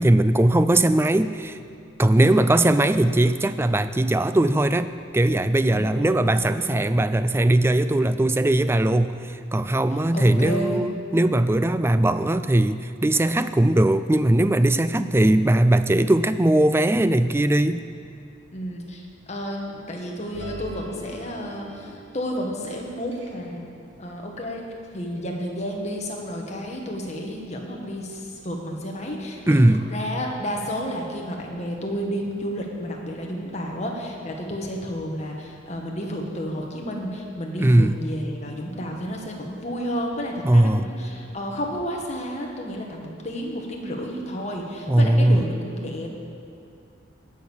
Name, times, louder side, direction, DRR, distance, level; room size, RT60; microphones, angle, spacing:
voice 1, 0.0-1.6 2.0-17.8 29.5-29.9 37.6-38.0 40.4-40.9 44.9-45.6, right 1 dB, 10° right, 12 dB, 0.3 m, -19 dB
voice 2, 2.2-2.5 5.7-6.8 10.1-10.9 14.9-15.3 18.5-23.7 24.0-24.6 24.9-29.6 29.9-46.1, equal, 35° left, 0 dB, 1.7 m, -31 dB
sound 1, 20.3-22.7 23.1-23.4, right 2 dB, 70° right, 1.6 m, -40 dB
18.5 x 6.5 x 7.2 m, 2.4 s
head